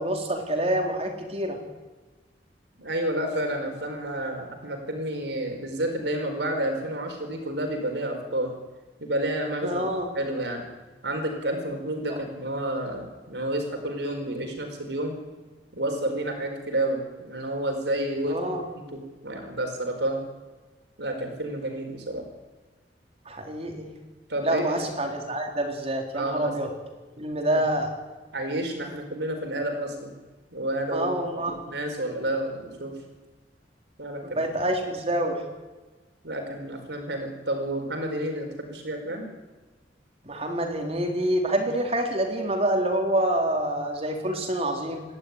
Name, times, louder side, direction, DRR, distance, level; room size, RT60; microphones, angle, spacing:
voice 1, 0.0-1.6 9.6-10.1 12.1-12.2 18.3-18.7 23.3-23.9 24.4-26.7 27.2-27.9 30.9-31.6 34.2-35.4 40.2-45.0, right 1 dB, 35° right, 3 dB, 3.8 m, -27 dB
voice 2, 2.8-8.5 9.0-9.8 10.1-10.7 11.0-15.1 15.7-18.4 18.7-20.2 21.0-22.3 24.3-24.8 26.1-26.5 27.5-27.6 28.3-30.1 30.5-31.1 31.7-32.9 34.0-34.4 36.2-39.3, right 1 dB, 75° right, 5 dB, 4.8 m, -30 dB
27.5 x 12.0 x 9.7 m, 1.3 s
head